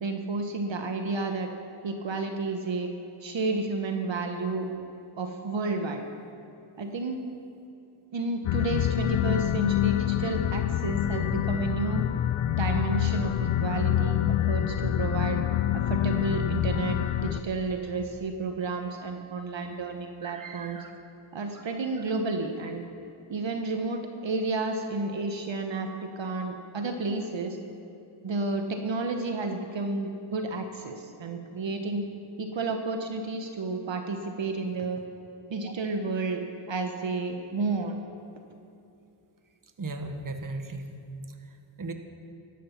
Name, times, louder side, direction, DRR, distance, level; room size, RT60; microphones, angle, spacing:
voice 1, 0.0-1.5 1.8-2.9 3.2-4.7 5.2-6.0 6.8-7.2 8.1-12.0 12.6-15.4 15.7-20.8 21.3-22.8 23.3-27.6 28.2-32.1 32.4-35.0 35.5-36.4 36.7-38.0, right 3 dB, 65° right, 5 dB, 1.1 m, -31 dB
sound 1, 8.4-17.4, left 11 dB, 90° left, 0.6 m, -26 dB
voice 2, 20.2-20.9 39.8-40.9 41.8-41.9, right 2 dB, 40° right, 6 dB, 1.3 m, -36 dB
13.0 x 13.0 x 5.8 m, 2.7 s
cardioid pair, 60°, 48 cm